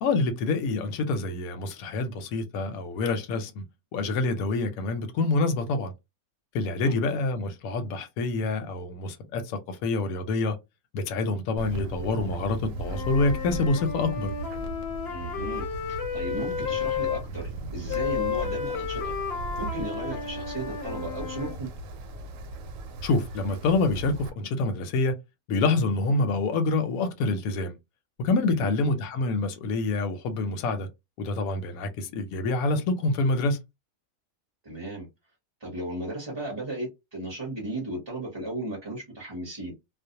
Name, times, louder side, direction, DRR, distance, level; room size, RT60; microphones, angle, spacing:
voice 1, 0.0-3.6 3.9-5.9 6.5-10.6 10.9-14.3 23.0-25.2 25.5-27.8 28.2-30.9 31.2-33.6, left 3 dB, 80° left, 1.0 m, -27 dB
Wind, 11.6-24.3, right 2 dB, 75° right, 0.9 m, -37 dB
Wind instrument woodwind instrument, 12.8-17.2 17.9-21.6, left 7 dB, 60° left, 0.7 m, -32 dB
voice 2, 15.1-15.7 16.1-19.1 19.6-21.7 28.5-28.8 34.6-35.1 35.6-39.7, right 1 dB, 25° right, 0.7 m, -35 dB
2.5 x 2.0 x 2.7 m
omnidirectional pair, 1.5 m